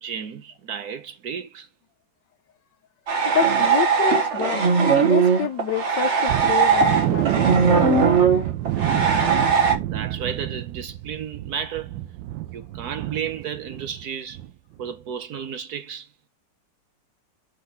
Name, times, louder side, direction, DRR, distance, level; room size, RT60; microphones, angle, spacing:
voice 1, 0.0-1.7 4.0-4.5 8.8-9.4 9.8-12.0 12.5-14.4 14.8-16.1, right 7 dB, 65° right, 1.2 m, -33 dB
sound 1, 3.1-9.8, right 5 dB, 45° right, 1.3 m, -19 dB
voice 2, 3.3-4.6 5.0-7.5, left 9 dB, 70° left, 1.4 m, -27 dB
sound 2, 6.3-14.0 14.3-14.5 14.9-15.0, right 14 dB, 80° right, 1.3 m, -28 dB
5.4 x 4.0 x 5.6 m
omnidirectional pair, 2.0 m